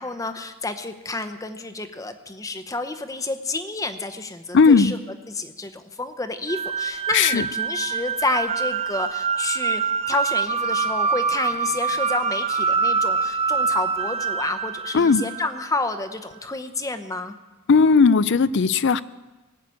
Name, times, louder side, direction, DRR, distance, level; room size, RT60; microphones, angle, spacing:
voice 1, 0.0-5.0 5.3-9.8 10.1-17.4, left 3 dB, 15° left, 8 dB, 0.8 m, -29 dB
voice 2, 4.5-4.9 7.1-7.4 14.9-15.2 17.7-19.0, left 5 dB, 55° left, 17 dB, 0.4 m, -16 dB
sound 1, 6.5-15.7, right 5 dB, 30° right, 0.5 m, -25 dB
20.0 x 6.7 x 8.6 m, 1.1 s
head